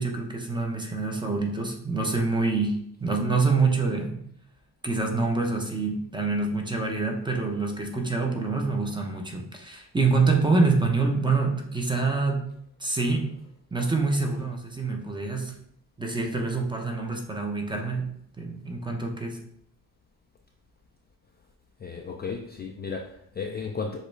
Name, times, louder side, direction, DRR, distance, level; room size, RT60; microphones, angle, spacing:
voice 1, 0.0-4.2 4.8-12.5 12.8-13.3 13.7-15.5 16.0-18.1 18.4-19.4, right 3 dB, 10° right, 2 dB, 0.7 m, -26 dB
voice 2, 21.8-24.0, left 5 dB, 25° left, 2 dB, 0.4 m, -34 dB
6.6 x 2.4 x 3.2 m, 0.70 s
cardioid pair, 110°, 41 cm